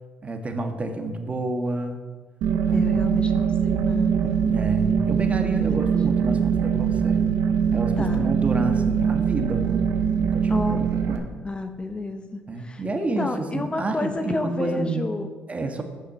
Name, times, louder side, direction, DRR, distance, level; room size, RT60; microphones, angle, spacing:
voice 1, 0.2-2.0 2.7-2.9 4.4-7.2 7.7-11.3 12.5-15.1 15.5-15.8, right 2 dB, 30° right, 6 dB, 1.5 m, -29 dB
sound 1, 2.4-11.2, right 7 dB, 80° right, 1.1 m, -22 dB
voice 2, 2.7-4.4 5.7-5.8 6.3-6.4 8.0-8.3 10.5-10.8 11.4-15.3, left 2 dB, 25° left, 8 dB, 0.9 m, -30 dB
8.7 x 6.5 x 7.4 m, 1.4 s
supercardioid pair, 65°, 4 cm